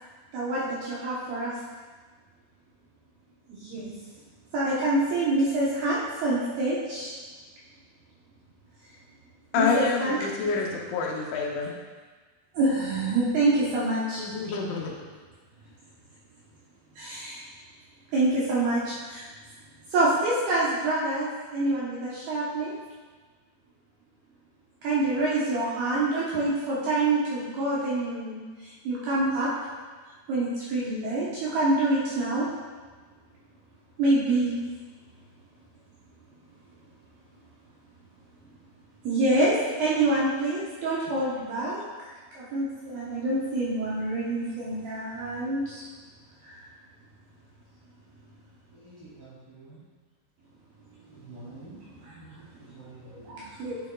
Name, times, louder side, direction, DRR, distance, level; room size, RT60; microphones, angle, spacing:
voice 1, 0.3-1.6 3.5-3.9 4.5-7.2 9.6-10.2 12.5-14.3 17.0-17.4 18.1-19.3 19.9-22.7 24.8-29.5 30.3-32.5 34.0-34.7 39.0-45.8 46.4-46.6 53.1-53.8, right 2 dB, 70° right, -8 dB, 2.4 m, -26 dB
voice 2, 9.5-11.7 14.2-14.9, left 4 dB, 80° left, -1 dB, 3.1 m, -27 dB
voice 3, 48.7-49.8 51.1-51.8 52.1-53.5, right 2 dB, 35° right, -11 dB, 2.1 m, -48 dB
9.1 x 7.4 x 2.3 m, 1.4 s
omnidirectional pair, 5.4 m